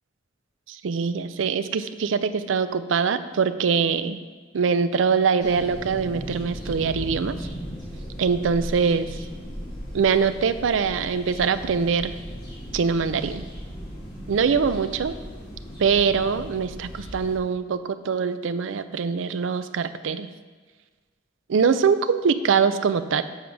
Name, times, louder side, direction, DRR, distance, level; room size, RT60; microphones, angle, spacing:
voice 1, 0.7-4.2 4.5-7.5 8.2-9.2 9.9-12.1 12.7-13.4 14.3-15.1 15.8-20.3 21.5-23.2, right 5 dB, 90° right, 12 dB, 0.4 m, -23 dB
sound 1, 5.4-17.4, equal, 25° left, 1.8 m, -37 dB
7.1 x 4.9 x 5.9 m, 1.5 s
head